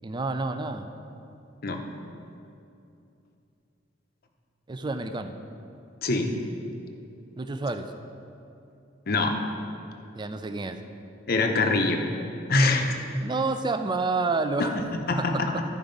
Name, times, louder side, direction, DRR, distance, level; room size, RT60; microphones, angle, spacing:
voice 1, 0.0-0.9 4.7-5.3 7.4-7.9 10.1-10.8 13.2-14.8 15.2-15.6, right 3 dB, 25° right, 8 dB, 0.4 m, -29 dB
voice 2, 6.0-6.3 9.1-9.3 11.3-12.0 12.5-13.0 14.6-14.7 15.1-15.5, left 3 dB, 55° left, 4 dB, 0.8 m, -23 dB
13.0 x 4.9 x 5.2 m, 2.7 s
head